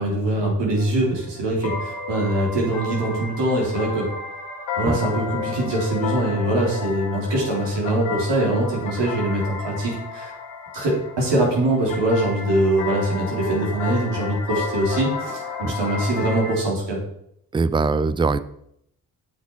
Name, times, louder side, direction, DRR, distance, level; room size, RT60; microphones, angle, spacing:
voice 1, 0.0-4.1 4.8-10.3 10.7-17.0, right 1 dB, 60° right, -2 dB, 3.4 m, -23 dB
sound 1, 0.8-16.6, left 5 dB, 70° left, 2.2 m, -32 dB
voice 2, 17.5-18.4, right 4 dB, 10° right, 15 dB, 0.4 m, -21 dB
8.0 x 5.9 x 4.6 m, 0.73 s
hypercardioid pair, 45°, 48 cm